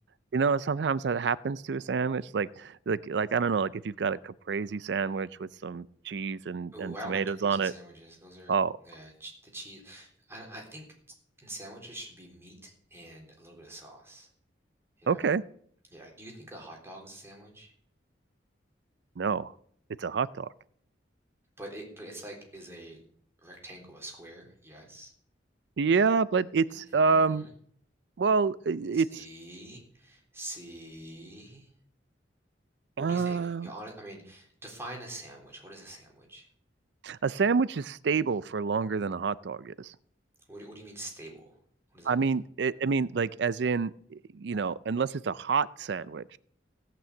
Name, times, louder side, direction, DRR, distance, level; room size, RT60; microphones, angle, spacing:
voice 1, 0.3-7.7 8.5-8.7 15.1-15.4 19.2-19.5 20.0-20.5 25.8-27.5 28.2-29.1 33.0-33.7 37.0-39.9 42.1-46.4, right 5 dB, 65° right, 18 dB, 0.4 m, -28 dB
voice 2, 6.7-10.9 11.4-14.3 15.0-15.3 15.9-17.7 21.6-23.0 23.4-25.1 26.7-27.5 28.9-31.7 33.0-36.5 40.5-41.6 41.9-42.3, right 1 dB, 15° right, 0 dB, 3.8 m, -45 dB
16.5 x 6.1 x 8.2 m, 0.63 s
head